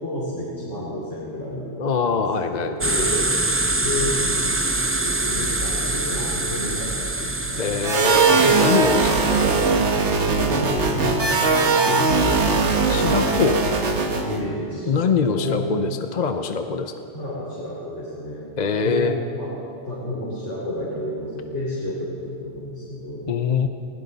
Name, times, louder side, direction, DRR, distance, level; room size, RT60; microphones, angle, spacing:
voice 1, 0.0-2.2 2.5-3.3 3.7-4.2 5.2-8.4 10.1-13.1 14.2-15.6 17.1-18.5 18.8-19.5 19.8-23.3, left 1 dB, 80° left, -7 dB, 3.3 m, -31 dB
voice 2, 1.8-2.8 7.6-9.8 12.9-13.6 14.9-16.9 18.6-19.2 23.3-23.7, left 5 dB, 45° left, 7 dB, 0.7 m, -23 dB
sound 1, 2.8-9.7, right 2 dB, 15° right, 0.5 m, -25 dB
sound 2, 7.8-14.4, right 4 dB, 75° right, 1.5 m, -20 dB
20.0 x 17.0 x 4.1 m, 2.7 s
omnidirectional pair, 1.2 m